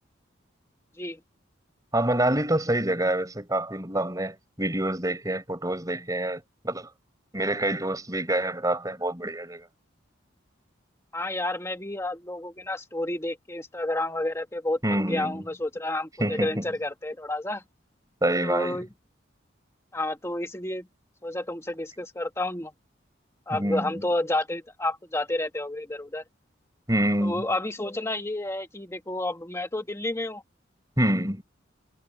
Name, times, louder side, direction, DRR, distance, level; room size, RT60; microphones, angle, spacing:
voice 1, 1.9-6.9 7.3-9.6 14.8-15.4 16.2-16.6 18.2-18.8 23.5-24.0 26.9-27.5 31.0-31.4, right 1 dB, 20° right, 5.9 m, -26 dB
voice 2, 11.1-17.6 18.4-18.9 19.9-20.9 21.2-22.7 23.5-26.2 27.2-30.4, left 1 dB, 15° left, 1.7 m, -30 dB
head